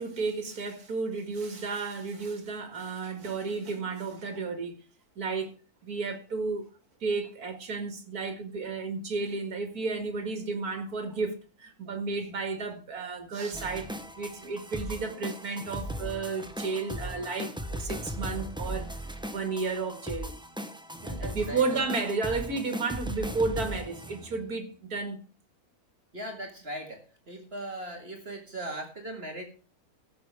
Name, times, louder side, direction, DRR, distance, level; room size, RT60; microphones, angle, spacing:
voice 1, 0.0-4.8 5.2-5.5 5.8-6.6 7.0-18.9 19.3-20.4 21.1-25.2, right 4 dB, 75° right, 2.4 m, -32 dB
sound 1, 13.5-24.5, equal, 5° right, 0.7 m, -38 dB
voice 2, 21.0-21.8 26.1-29.5, right 1 dB, 40° right, 2.2 m, -39 dB
16.0 x 7.4 x 4.7 m
omnidirectional pair, 1.6 m